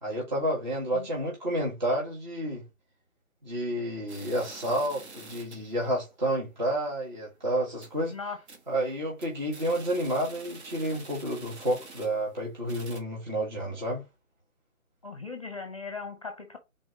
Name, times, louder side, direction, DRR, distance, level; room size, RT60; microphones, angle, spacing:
voice 1, 0.0-2.6 3.4-8.2 8.7-14.0, right 1 dB, 35° right, 1.6 m, -30 dB
sound 1, 4.1-5.7 6.1-6.2 6.5-6.6 7.1-7.3 7.6-8.1 8.5-8.8 9.1-12.3 12.6-13.0, right 3 dB, 50° right, 1.5 m, -47 dB
voice 2, 15.0-16.6, left 4 dB, 25° left, 0.8 m, -38 dB
4.0 x 3.5 x 3.8 m
hypercardioid pair, 175°, 41 cm